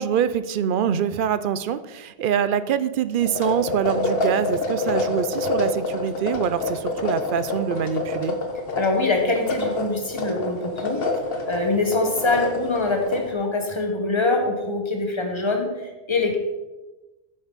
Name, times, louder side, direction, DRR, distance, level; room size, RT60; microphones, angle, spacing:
voice 1, 0.0-8.4, right 8 dB, 60° right, 14 dB, 0.6 m, -24 dB
sound 1, 3.2-13.3, left 2 dB, 65° left, 1.3 m, -27 dB
voice 2, 8.7-11.0 11.5-16.4, left 2 dB, 30° left, 2 dB, 1.4 m, -24 dB
10.0 x 8.0 x 4.1 m, 1.1 s
omnidirectional pair, 1.1 m